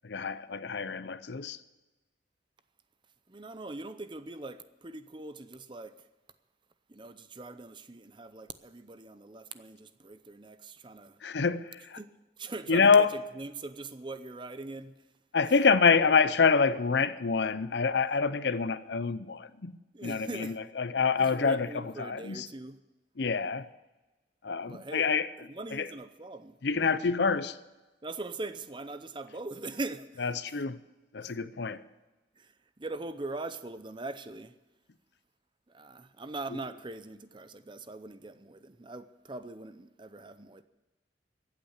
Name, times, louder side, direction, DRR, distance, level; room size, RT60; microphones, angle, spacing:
voice 1, 0.0-1.6 11.2-12.0 12.7-13.1 15.3-19.8 20.0-22.5 23.2-23.6 24.4-25.3 25.7-25.9 26.6-27.6 30.2-30.8 31.1-31.8, left 5 dB, 65° left, 0.6 m, -26 dB
voice 2, 3.3-6.1 6.9-11.2 12.0-12.1 12.4-15.0 19.9-20.6 21.2-22.8 24.6-25.1 25.5-26.6 28.0-30.3 31.2-31.3 32.4-34.6 35.7-40.6, right 2 dB, 25° right, 0.6 m, -41 dB
15.0 x 8.3 x 8.2 m
head